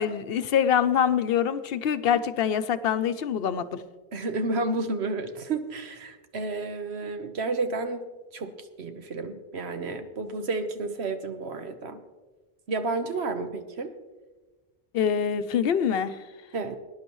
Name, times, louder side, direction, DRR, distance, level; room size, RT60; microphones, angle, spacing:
voice 1, 0.0-3.8 14.9-16.2, left 8 dB, 70° left, 12 dB, 0.8 m, -25 dB
voice 2, 4.1-8.0 8.3-8.5 8.8-12.0 12.7-13.9 16.5-16.8, right 3 dB, 85° right, 8 dB, 1.3 m, -31 dB
20.5 x 10.5 x 3.0 m, 1.2 s
omnidirectional pair, 1.1 m